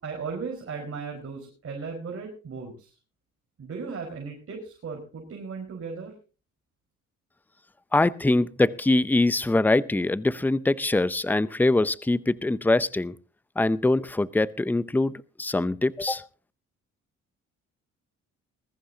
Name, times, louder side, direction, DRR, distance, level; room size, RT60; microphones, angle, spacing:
voice 1, 0.0-2.9 3.6-6.1, right 5 dB, 50° right, 1 dB, 4.9 m, -36 dB
voice 2, 7.9-13.1 13.6-15.1 15.4-16.3, left 2 dB, 5° left, 18 dB, 0.6 m, -23 dB
21.0 x 14.5 x 2.8 m, 0.35 s
cardioid pair, 90°, 30 cm